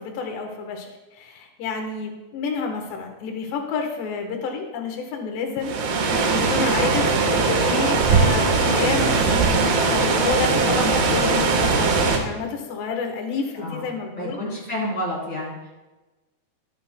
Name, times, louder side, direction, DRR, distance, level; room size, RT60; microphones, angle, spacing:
voice 1, 0.0-14.4, left 5 dB, 85° left, 3 dB, 3.4 m, -29 dB
sound 1, 5.6-12.2, right 4 dB, 75° right, 3.2 m, -20 dB
voice 2, 13.5-13.9 14.2-15.7, left 1 dB, 20° left, -5 dB, 3.0 m, -29 dB
17.5 x 8.5 x 2.2 m, 1.1 s
omnidirectional pair, 4.8 m